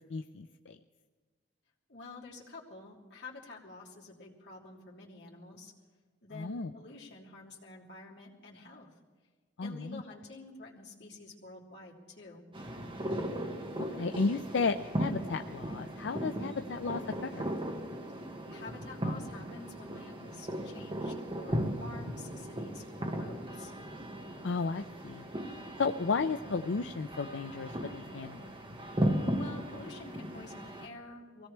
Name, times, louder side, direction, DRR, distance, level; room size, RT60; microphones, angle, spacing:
voice 1, 0.1-0.8 6.3-6.7 9.6-10.0 14.0-17.4 24.4-25.3 25.8-28.5, left 4 dB, 85° left, 8 dB, 0.5 m, -33 dB
voice 2, 1.9-5.7 6.2-8.9 9.6-12.5 16.5-16.8 18.2-23.7 29.3-31.5, left 3 dB, 65° left, -4 dB, 3.1 m, -49 dB
sound 1, 12.5-30.9, equal, 30° right, 1.5 m, -37 dB
24.0 x 17.0 x 3.3 m, 1.4 s
head